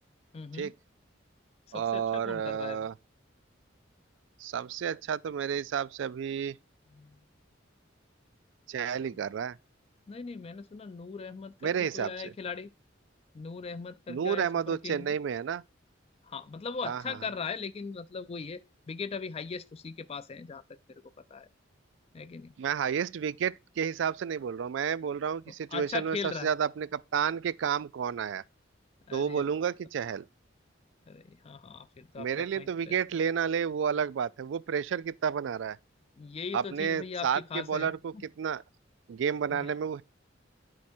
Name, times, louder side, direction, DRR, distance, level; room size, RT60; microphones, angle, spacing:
voice 1, 0.3-0.7 1.7-2.9 7.0-7.2 10.1-12.7 13.3-15.1 16.2-18.6 18.9-20.6 20.9-21.0 21.3-21.5 22.1-22.5 25.7-26.5 29.1-29.4 31.1-32.9 36.2-38.2 39.5-39.7, left 5 dB, 30° left, 0.3 m, -39 dB
voice 2, 1.7-2.9 4.4-6.6 8.7-9.6 11.6-12.3 14.1-15.6 16.8-17.2 22.6-28.4 29.1-30.2 32.2-35.8 36.5-38.6 39.1-40.0, right 7 dB, 65° right, 0.3 m, -31 dB
10.5 x 4.7 x 4.3 m
head